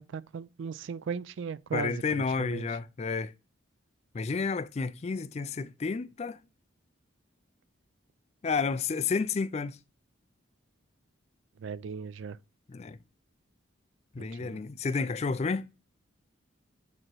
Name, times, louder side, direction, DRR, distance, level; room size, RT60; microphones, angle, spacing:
voice 1, 0.0-2.7 11.6-12.4 14.2-14.6, right 6 dB, 65° right, 0.3 m, -37 dB
voice 2, 1.7-3.3 4.1-6.4 8.4-9.8 12.7-13.0 14.1-15.7, left 4 dB, 30° left, 0.3 m, -31 dB
8.7 x 3.0 x 4.5 m
head